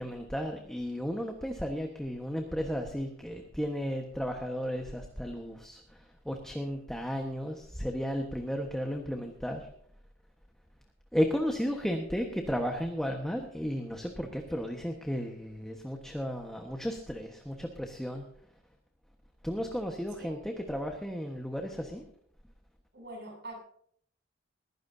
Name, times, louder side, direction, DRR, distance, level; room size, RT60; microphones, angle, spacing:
voice 1, 0.0-9.7 11.1-18.3 19.4-22.0, equal, 5° left, 2 dB, 1.3 m, -34 dB
voice 2, 22.9-23.6, right 1 dB, 60° right, 0 dB, 7.3 m, -44 dB
21.0 x 15.5 x 2.7 m, 0.63 s
head